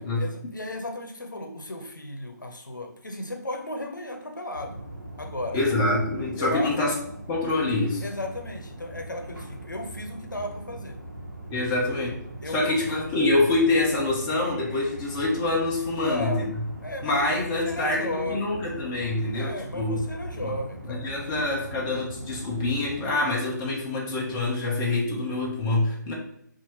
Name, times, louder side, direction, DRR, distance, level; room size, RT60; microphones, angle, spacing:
voice 1, 0.0-4.8 5.2-5.6 6.4-6.7 8.0-11.0 11.5-11.8 12.4-12.8 16.0-16.5 16.8-18.6 19.3-21.3, left 1 dB, 75° left, 4 dB, 0.7 m, -35 dB
sound 1, 4.5-23.1, right 1 dB, 90° right, 1.1 m, -41 dB
voice 2, 5.5-6.9 7.3-8.1 11.5-12.2 12.5-16.5 17.0-20.0 20.4-20.5 20.9-26.1, left 2 dB, 15° left, -3 dB, 0.4 m, -26 dB
4.1 x 2.5 x 3.0 m, 0.70 s
figure-of-eight pair, 145°, 10 cm